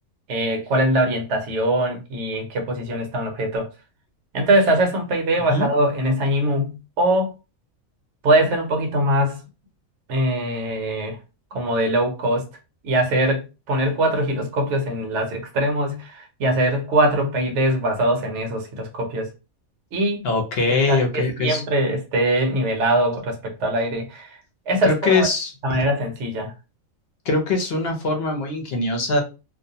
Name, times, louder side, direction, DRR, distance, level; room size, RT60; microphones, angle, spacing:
voice 1, 0.3-3.7 4.3-7.3 8.2-9.4 10.1-11.2 11.5-12.5 12.8-19.3 19.9-20.3 20.7-24.4 24.7-25.3 25.6-26.5, right 1 dB, 65° right, 1.0 m, -22 dB
voice 2, 20.2-21.6 24.9-25.8 27.3-29.2, left 3 dB, 55° left, 0.8 m, -22 dB
2.5 x 2.1 x 2.7 m
omnidirectional pair, 1.4 m